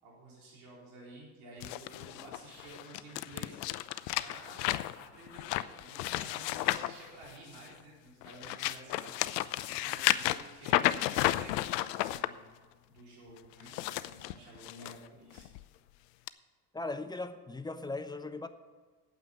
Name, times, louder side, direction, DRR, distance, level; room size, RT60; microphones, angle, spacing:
voice 1, 0.0-3.6 4.1-4.6 4.9-12.5 12.9-15.5, right 1 dB, 70° right, -4 dB, 4.1 m, -52 dB
sound 1, 1.6-7.7 8.2-12.3 13.5-14.9 15.4-15.6 16.3-16.4, left 16 dB, 75° left, 0.6 m, -33 dB
voice 2, 16.7-18.5, left 2 dB, 10° left, 9 dB, 0.8 m, -38 dB
8.8 x 8.1 x 8.4 m, 1.4 s
hypercardioid pair, 65°, 49 cm